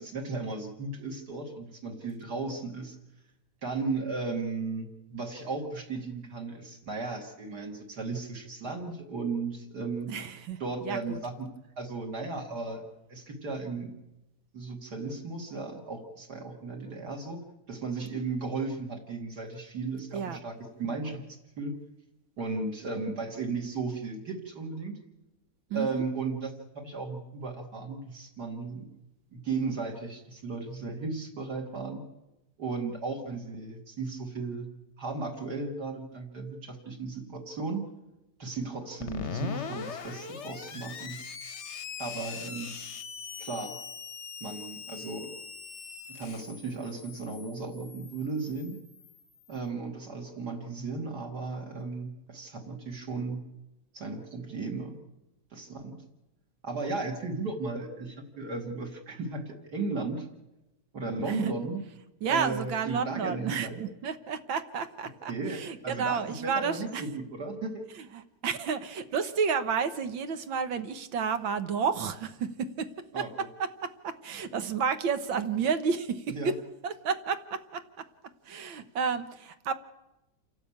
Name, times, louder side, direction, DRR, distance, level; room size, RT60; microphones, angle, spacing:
voice 1, 0.0-3.0 3.6-10.1 10.6-11.5 11.8-12.8 13.1-13.9 14.5-21.2 21.6-21.7 22.4-25.0 25.7-28.9 29.3-32.0 32.6-34.7 35.0-37.9 38.4-41.2 42.0-42.7 43.4-43.8 44.4-45.3 46.1-48.8 49.5-53.4 53.9-55.0 55.5-56.0 56.6-60.3 60.9-61.8 62.3-63.8 65.3-67.8 73.1-73.3 76.3-76.5, right 3 dB, 55° right, 1 dB, 2.8 m, -35 dB
voice 2, 10.1-11.2 20.1-20.4 25.7-26.0 61.4-61.5 62.2-67.0 68.4-72.9 73.2-73.3 73.6-76.5 76.8-77.8 78.5-79.7, right 6 dB, 85° right, 10 dB, 1.9 m, -31 dB
Screech, 39.0-49.5, left 6 dB, 45° left, 1.0 m, -41 dB
28.0 x 12.0 x 8.7 m, 0.97 s
omnidirectional pair, 2.1 m